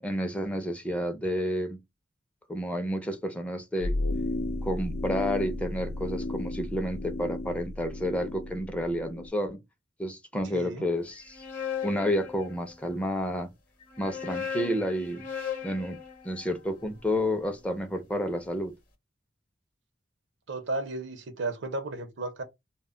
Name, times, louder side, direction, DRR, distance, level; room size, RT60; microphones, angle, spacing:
voice 1, 0.0-1.8 2.5-3.9 4.6-9.6 10.0-11.4 11.8-13.5 14.0-15.2 15.6-16.0 16.2-18.7, equal, 5° left, 0.4 m, -30 dB
sound 1, 3.8-9.3, left 2 dB, 75° left, 0.3 m, -33 dB
voice 2, 10.5-10.8 20.5-22.4, right 2 dB, 75° right, 0.6 m, -34 dB
sound 2, 11.1-13.0 13.8-18.0, left 8 dB, 50° left, 0.8 m, -38 dB
2.1 x 2.0 x 3.6 m
head